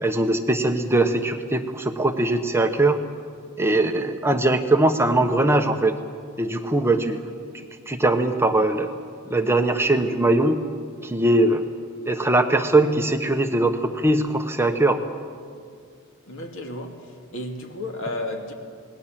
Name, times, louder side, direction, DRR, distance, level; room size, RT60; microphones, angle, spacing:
voice 1, 0.0-3.0 3.6-6.0 6.4-7.2 7.9-8.9 9.3-10.6 11.0-11.6 12.1-15.0, right 2 dB, 10° right, 1.0 m, -21 dB
voice 2, 16.3-18.5, left 1 dB, 65° left, 2.6 m, -33 dB
28.0 x 20.0 x 7.4 m
head